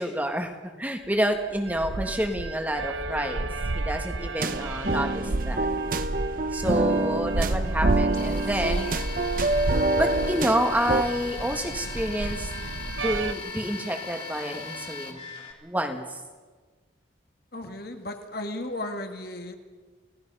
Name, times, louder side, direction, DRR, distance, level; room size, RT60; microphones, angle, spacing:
voice 1, 0.0-3.5 3.7-5.7 6.5-8.9 10.0-12.5 13.0-15.2 15.6-16.2, equal, 10° right, 4 dB, 1.7 m, -28 dB
sound 1, 1.2-13.3, right 2 dB, 70° right, 0.8 m, -31 dB
sound 2, 4.4-11.0, right 2 dB, 45° right, 1.1 m, -27 dB
sound 3, 8.1-15.5, left 4 dB, 35° left, 3.3 m, -38 dB
voice 2, 17.5-19.6, left 1 dB, 50° left, 5 dB, 1.9 m, -35 dB
29.5 x 18.0 x 5.6 m, 1.4 s
head